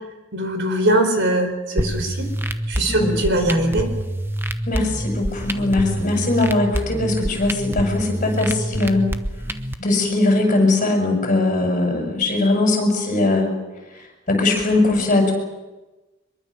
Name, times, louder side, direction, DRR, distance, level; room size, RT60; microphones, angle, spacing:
voice 1, 0.3-2.3 2.7-3.9, right 1 dB, 60° right, 6 dB, 4.4 m, -21 dB
sound 1, 1.8-9.8, right 1 dB, 10° right, 1.0 m, -26 dB
voice 2, 4.7-9.1 9.8-13.6 14.3-15.3, left 2 dB, 40° left, 2 dB, 6.9 m, -20 dB
24.0 x 22.5 x 6.6 m, 1.1 s
head